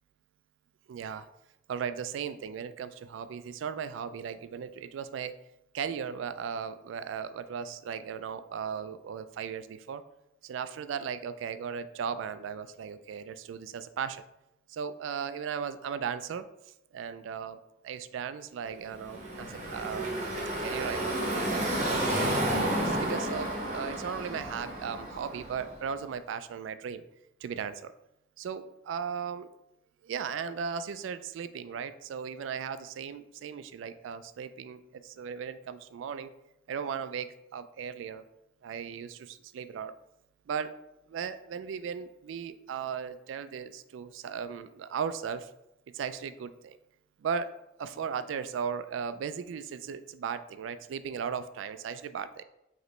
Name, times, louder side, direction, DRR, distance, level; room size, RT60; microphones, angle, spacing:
voice 1, 0.9-1.3 1.7-5.3 5.7-10.0 10.4-14.2 14.7-16.4 16.9-17.6 17.8-21.7 22.1-22.7 23.1-27.0 27.4-27.9 28.4-29.5 30.0-36.3 36.7-38.2 38.6-39.9 40.5-40.7 41.1-45.5 45.9-46.8 47.2-47.5 47.8-52.4, right 7 dB, 80° right, 12 dB, 0.3 m, -37 dB
Car passing by / Traffic noise roadway noise, 18.9-25.9, right 1 dB, 35° right, 0.8 m, -31 dB
5.1 x 3.0 x 3.2 m, 0.85 s
head